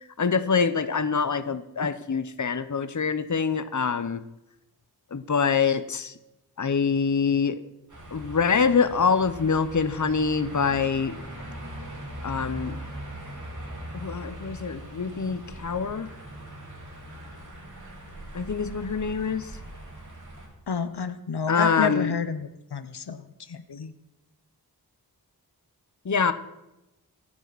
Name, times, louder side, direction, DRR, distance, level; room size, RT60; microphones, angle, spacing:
voice 1, 0.2-4.2 5.1-6.1 6.6-7.6 8.1-11.1 12.2-12.8 13.9-16.1 18.3-19.5 21.5-22.1 26.0-26.3, left 5 dB, 50° left, 11 dB, 1.0 m, -25 dB
sound 1, 7.9-20.5, right 1 dB, 50° right, 5.3 m, -40 dB
voice 2, 20.7-23.9, left 6 dB, 85° left, 12 dB, 1.0 m, -30 dB
25.5 x 10.0 x 4.2 m, 0.94 s
wide cardioid pair, 75°, 39 cm